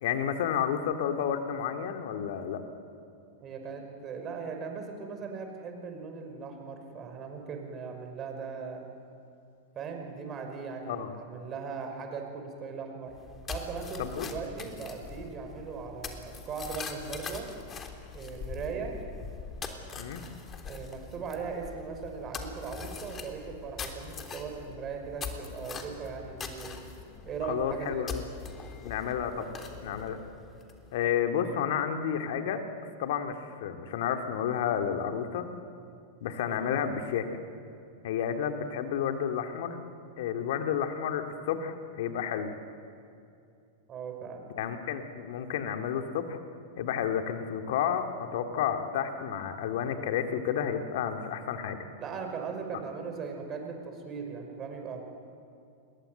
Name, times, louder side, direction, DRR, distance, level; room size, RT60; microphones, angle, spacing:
voice 1, 0.0-2.6 10.9-11.1 14.0-14.3 20.0-20.2 27.5-28.2 28.8-29.5 29.8-30.2 30.9-32.6 33.0-35.5 36.2-37.3 38.0-39.8 40.2-42.5 44.6-46.4 46.8-51.8, left 8 dB, 60° left, 5 dB, 2.4 m, -31 dB
voice 2, 3.4-8.8 9.8-13.1 13.5-17.5 18.1-19.0 20.7-26.8 27.3-28.0 36.5-36.8 43.9-44.5 52.0-55.0, right 5 dB, 30° right, 4 dB, 5.7 m, -39 dB
sound 1, 13.1-31.0, left 5 dB, 25° left, 3.4 m, -42 dB
29.0 x 21.5 x 8.0 m, 2.5 s
hypercardioid pair, 100°, 0 cm